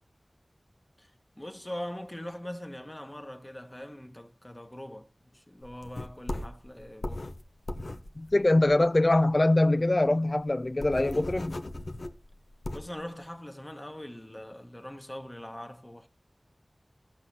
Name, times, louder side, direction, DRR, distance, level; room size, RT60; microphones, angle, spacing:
voice 1, 1.0-7.3 12.7-16.1, left 1 dB, 20° left, 1.2 m, -42 dB
sound 1, 5.6-9.3 9.7-9.8 10.0-10.1 10.5-13.0, left 1 dB, 75° left, 0.8 m, -38 dB
voice 2, 8.2-11.6, left 2 dB, 45° left, 0.4 m, -23 dB
16.0 x 5.9 x 2.7 m
wide cardioid pair, 45°, 0 cm